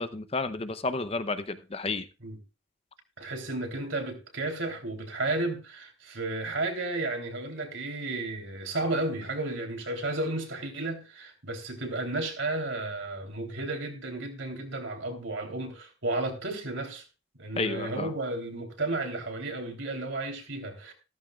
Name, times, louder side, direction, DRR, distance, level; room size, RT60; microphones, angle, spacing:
voice 1, 0.0-2.1 17.6-18.1, left 3 dB, 30° left, 0.7 m, -31 dB
voice 2, 3.2-17.0 17.4-20.9, right 2 dB, 60° right, 3.3 m, -33 dB
15.0 x 14.0 x 2.4 m
head